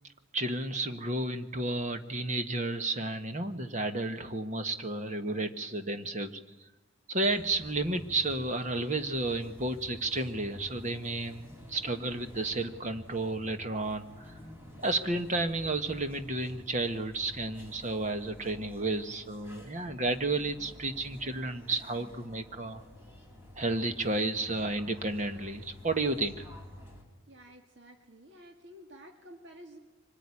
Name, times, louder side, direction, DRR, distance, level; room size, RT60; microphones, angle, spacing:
voice 1, 0.3-6.4 7.1-14.4 14.8-22.8 23.6-26.5, right 2 dB, 35° right, 8 dB, 1.4 m, -32 dB
sound 1, 7.2-27.0, left 1 dB, 10° right, 4.1 m, -50 dB
voice 2, 27.3-29.8, equal, 55° right, 4 dB, 2.0 m, -51 dB
24.5 x 19.5 x 9.9 m, 1.1 s
head